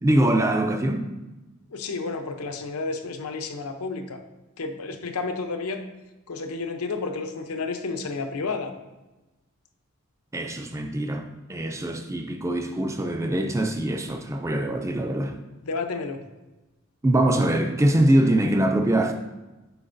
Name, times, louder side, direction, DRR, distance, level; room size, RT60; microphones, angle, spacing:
voice 1, 0.0-1.1 10.3-11.2 11.5-15.3 17.0-19.1, right 1 dB, 15° right, 0.4 m, -23 dB
voice 2, 1.7-4.2 4.6-5.8 6.3-8.7 15.6-16.2, left 4 dB, 90° left, 0.7 m, -31 dB
7.9 x 5.0 x 2.6 m
head